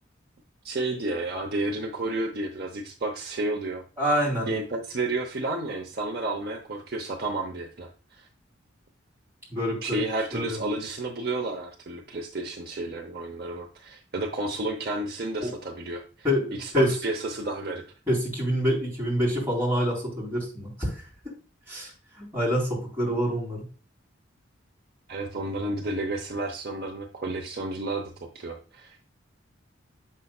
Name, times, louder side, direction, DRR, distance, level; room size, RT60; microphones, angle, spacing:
voice 1, 0.6-3.8 4.5-8.3 9.8-16.0 16.5-17.8 25.1-29.0, right 2 dB, 50° right, 2 dB, 0.8 m, -31 dB
voice 2, 4.0-4.5 9.5-10.0 10.3-10.6 15.4-15.5 16.2-16.9 18.1-20.9 21.7-21.9 22.2-23.6, equal, 10° right, -5 dB, 3.6 m, -26 dB
7.5 x 5.7 x 2.3 m, 0.37 s
head